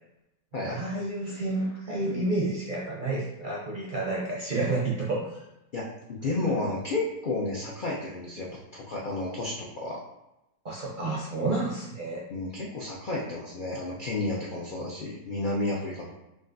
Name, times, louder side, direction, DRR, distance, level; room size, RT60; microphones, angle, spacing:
voice 1, 0.6-5.4 10.6-12.2, right 2 dB, 55° right, -5 dB, 0.5 m, -30 dB
voice 2, 5.7-10.0 12.3-16.2, left 2 dB, 85° left, -3 dB, 0.4 m, -32 dB
6.0 x 2.5 x 2.5 m, 0.91 s
omnidirectional pair, 1.7 m